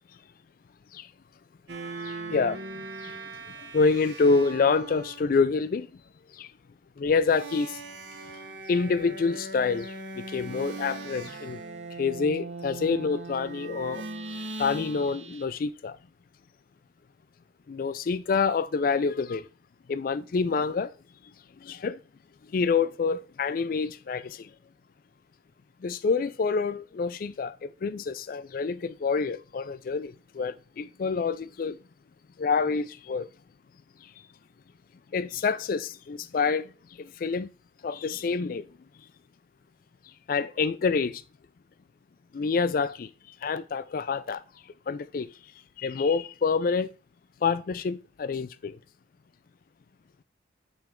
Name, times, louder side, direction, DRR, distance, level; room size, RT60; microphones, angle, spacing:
sound 1, 1.7-5.3 7.0-15.4, right 3 dB, 75° right, 1.0 m, -40 dB
voice 1, 2.0-2.6 3.0-3.2 3.6-5.9 6.4-6.5 7.0-7.8 8.7-11.6 12.0-14.0 14.3-16.0 17.7-19.5 19.9-20.9 21.6-22.0 22.5-24.5 25.8-31.8 32.4-33.3 35.1-36.7 37.0-37.5 37.8-38.7 40.3-41.2 42.3-43.1 43.4-44.4 44.9-45.3 45.8-46.9 47.4-48.8, left 4 dB, 50° left, 0.3 m, -27 dB
8.8 x 3.3 x 3.7 m
head